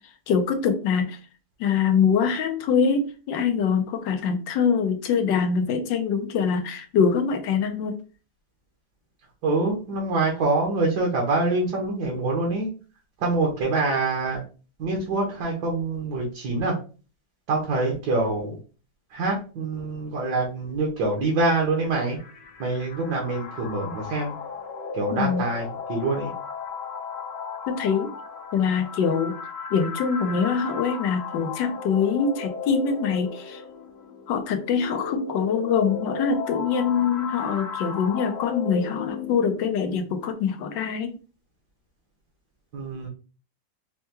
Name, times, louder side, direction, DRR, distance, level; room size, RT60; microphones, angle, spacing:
voice 1, 0.3-1.2 1.6-8.0 25.1-25.4 27.7-28.1 28.5-29.4 29.7-33.6 34.3-41.1, left 6 dB, 90° left, 7 dB, 1.4 m, -24 dB
voice 2, 9.4-12.7 13.2-14.4 14.8-16.7 17.5-18.6 19.1-22.2 22.6-24.3 24.9-26.3 42.7-43.1, right 3 dB, 70° right, -1 dB, 1.5 m, -25 dB
sound 1, 21.8-39.7, left 5 dB, 65° left, 0.6 m, -35 dB
5.5 x 2.2 x 2.9 m, 0.36 s
omnidirectional pair, 1.9 m